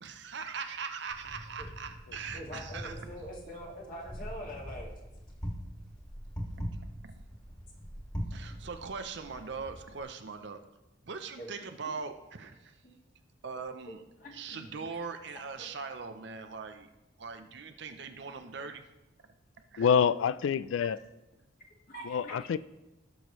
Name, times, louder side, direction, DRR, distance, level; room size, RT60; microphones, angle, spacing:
voice 1, 0.0-2.9 7.0-7.3 8.3-10.6 11.1-12.8 13.4-14.0 14.3-16.9 17.2-18.8 19.7-19.9, right 5 dB, 60° right, 0.6 m, -41 dB
Wind, 1.1-10.0, equal, 20° left, 1.9 m, -42 dB
voice 2, 2.3-4.9 11.4-11.5 12.8-13.0 14.2-14.6 15.3-15.4 16.1-16.2 21.9-22.4, equal, 45° left, 1.9 m, -44 dB
voice 3, 19.8-21.0 22.0-22.6, left 7 dB, 75° left, 0.3 m, -26 dB
16.5 x 6.2 x 3.1 m
head